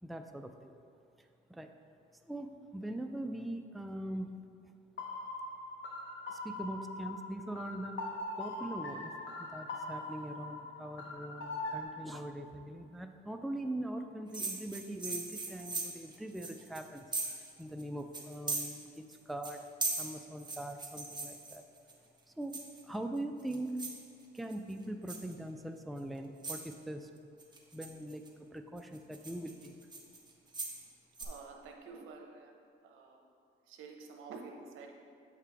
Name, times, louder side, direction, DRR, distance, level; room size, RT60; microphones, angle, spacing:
voice 1, 0.0-0.7 1.2-1.7 2.3-4.3 6.3-9.1 9.4-19.6 20.0-21.6 22.3-23.8 24.3-27.1 27.7-28.2 28.5-29.8, right 1 dB, ahead, 5 dB, 0.3 m, -42 dB
sound 1, 5.0-11.8, left 2 dB, 65° left, 1.1 m, -42 dB
sound 2, 14.3-17.5 17.8-17.9 18.1-19.2 19.4-21.9 22.5-23.0 23.4-24.0 24.4-24.7 25.1-25.3 26.0-26.1 26.4-26.7 27.4-28.3 28.8-30.8 31.2-31.3, right 3 dB, 20° right, 1.1 m, -39 dB
voice 2, 31.2-32.5 32.8-33.2 33.7-34.9, right 4 dB, 90° right, 2 dB, 0.8 m, -49 dB
8.1 x 5.0 x 3.4 m, 2.4 s
cardioid pair, 90°, 20 cm